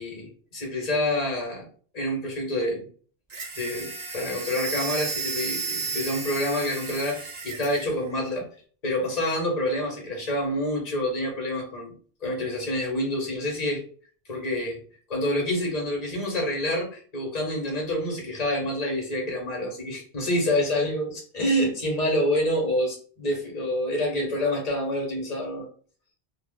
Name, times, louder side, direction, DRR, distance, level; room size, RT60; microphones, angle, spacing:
voice 1, 0.0-1.7 1.9-2.9 3.6-8.5 8.8-11.9 12.2-13.8 14.3-14.8 15.1-25.7, left 1 dB, 40° left, 0 dB, 1.1 m, -27 dB
sound 1, 3.3-7.9, right 4 dB, 45° right, 0.7 m, -33 dB
2.7 x 2.1 x 3.5 m, 0.43 s
omnidirectional pair, 1.1 m